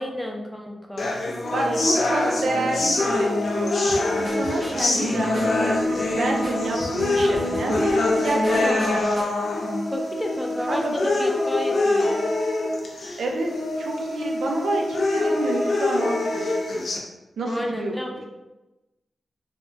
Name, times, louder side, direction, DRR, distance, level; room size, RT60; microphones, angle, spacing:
voice 1, 0.0-3.2 4.6-5.3 8.5-9.0 9.9-12.2 17.5-18.2, equal, 5° left, 1 dB, 0.5 m, -32 dB
sound 1, 1.0-17.0, left 2 dB, 70° left, 0.5 m, -24 dB
voice 2, 1.5-9.0 10.7-10.9 13.2-13.5 13.8-16.8 17.4-18.2, right 2 dB, 80° right, 1 dB, 0.5 m, -28 dB
sound 2, 3.9-9.2, right 1 dB, 45° right, 0.7 m, -38 dB
3.4 x 2.1 x 2.5 m, 1.0 s
cardioid pair, 70°, 0 cm